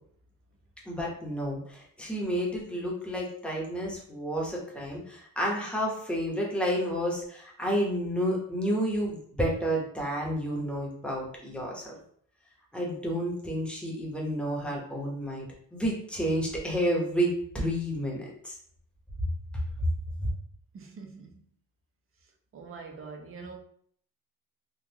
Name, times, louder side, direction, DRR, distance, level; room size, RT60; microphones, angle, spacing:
voice 1, 0.9-11.9 12.7-15.5 15.7-18.5 20.2-20.3, equal, 5° left, 1.0 m, -30 dB
voice 2, 20.7-21.4 22.5-23.6, right 4 dB, 40° right, 0.7 m, -44 dB
3.7 x 2.3 x 2.9 m
cardioid pair, 115°, 34 cm